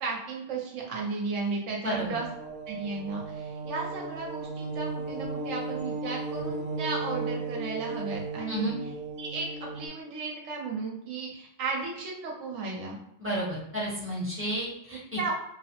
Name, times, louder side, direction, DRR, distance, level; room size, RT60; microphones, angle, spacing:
voice 1, 0.0-2.3 2.7-8.8 9.2-13.0 15.2-15.3, right 4 dB, 75° right, -1 dB, 1.1 m, -34 dB
voice 2, 1.8-2.2 8.5-8.7 13.2-15.3, equal, 10° right, -7 dB, 0.7 m, -32 dB
sound 1, 1.9-9.9, right 3 dB, 45° left, 1.1 m, -35 dB
2.8 x 2.0 x 2.8 m, 0.80 s
omnidirectional pair, 1.3 m